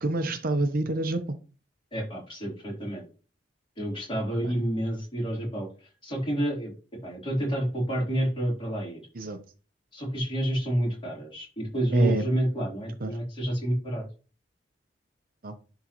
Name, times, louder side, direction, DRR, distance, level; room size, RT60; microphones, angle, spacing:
voice 1, 0.0-1.4 4.4-4.5 9.1-9.4 11.9-12.3 13.0-13.1 15.4-15.5, right 2 dB, 55° right, 8 dB, 0.7 m, -27 dB
voice 2, 1.9-3.0 3.8-6.7 7.0-9.0 9.9-14.0, right 1 dB, 30° left, -4 dB, 3.6 m, -29 dB
11.0 x 3.7 x 3.0 m, 0.36 s
head